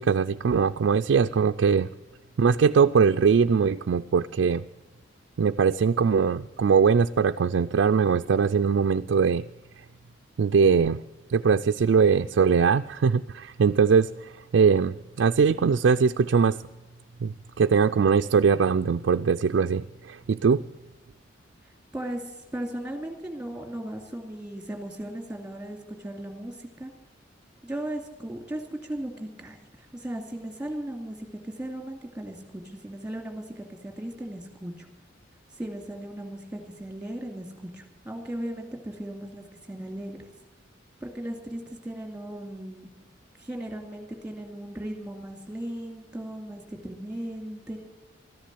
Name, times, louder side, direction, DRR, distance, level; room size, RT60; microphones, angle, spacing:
voice 1, 0.0-1.9 2.4-4.6 5.4-9.4 10.4-11.0 11.3-16.6 17.2-20.6, right 6 dB, 75° right, 7 dB, 0.4 m, -21 dB
voice 2, 22.5-26.9 27.6-31.2 31.4-34.9 35.6-40.2 41.0-42.9 43.4-47.8, right 1 dB, 5° right, 4 dB, 2.5 m, -37 dB
13.5 x 10.5 x 7.8 m, 1.1 s
head